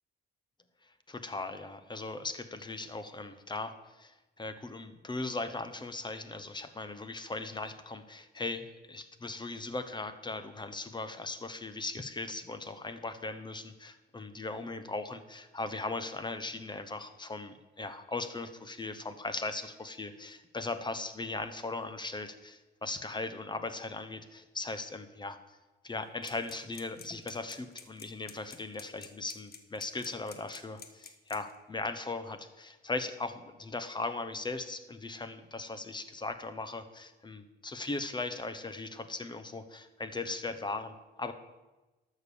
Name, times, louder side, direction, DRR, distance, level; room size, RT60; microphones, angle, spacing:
voice 1, 1.1-25.4 25.8-41.3, left 3 dB, 20° left, 11 dB, 1.0 m, -38 dB
sound 1, 26.2-31.6, left 6 dB, 50° left, 1.4 m, -49 dB
12.5 x 6.6 x 6.9 m, 1.1 s
cardioid pair, 90°, 20 cm